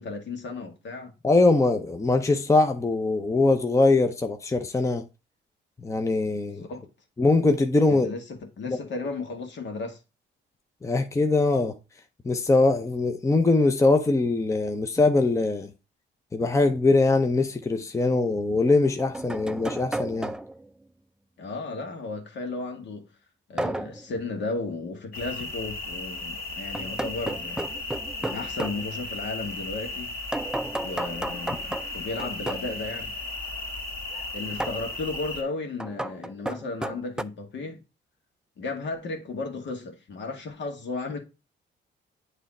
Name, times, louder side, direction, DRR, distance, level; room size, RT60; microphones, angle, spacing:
voice 1, 0.0-1.1 6.5-6.8 7.9-10.0 21.4-23.1 23.5-27.7 28.2-30.1 30.8-33.1 34.3-37.8 38.6-41.2, left 3 dB, 65° left, 1.8 m, -34 dB
voice 2, 1.2-5.0 5.8-6.7 7.2-8.1 8.7-8.8 10.8-11.7 12.2-15.7 16.3-20.3, left 3 dB, 15° left, 0.7 m, -22 dB
sound 1, 17.3-17.4 18.7-20.7 23.6-24.1 26.7-28.8 30.3-32.7 34.6-34.9 35.8-37.2, right 1 dB, 5° right, 0.3 m, -33 dB
sound 2, 25.1-35.4, left 2 dB, 45° left, 2.6 m, -35 dB
8.6 x 3.4 x 4.2 m
cardioid pair, 90°, 20 cm